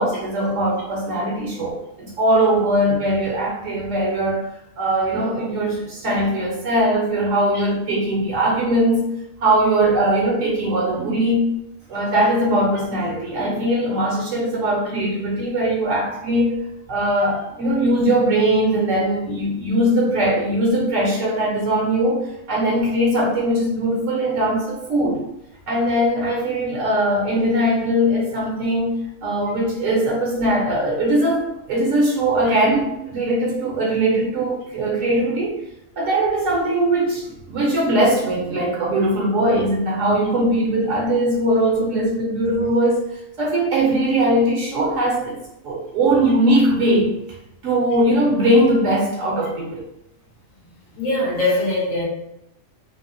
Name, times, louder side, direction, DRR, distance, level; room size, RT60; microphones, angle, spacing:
voice 1, 0.0-4.5 4.8-9.1 9.4-11.5 11.9-16.6 16.9-25.2 25.7-29.0 29.2-35.6 36.0-43.0 43.4-45.4 45.6-47.1 47.6-49.8, right 1 dB, 75° right, -3 dB, 1.0 m, -20 dB
voice 2, 51.0-52.0, left 2 dB, 80° left, -7 dB, 1.5 m, -21 dB
3.4 x 2.1 x 2.5 m, 0.83 s
omnidirectional pair, 1.4 m